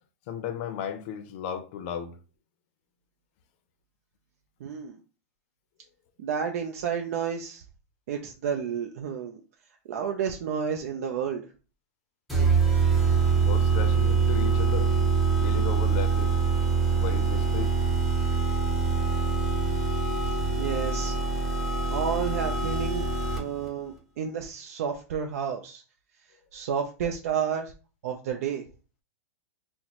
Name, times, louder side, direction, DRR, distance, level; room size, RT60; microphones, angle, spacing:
voice 1, 0.3-2.2 13.4-14.9 15.4-16.4 16.9-17.8, left 8 dB, 50° left, 0.5 m, -35 dB
voice 2, 4.6-5.0 6.2-7.6 8.1-9.4 9.9-11.4 20.2-21.2 21.9-25.8 26.5-27.7 28.0-28.6, right 7 dB, 70° right, 0.5 m, -31 dB
sound 1, 12.3-23.7, right 5 dB, ahead, 0.8 m, -24 dB
2.9 x 2.1 x 4.0 m
supercardioid pair, 140°, 8 cm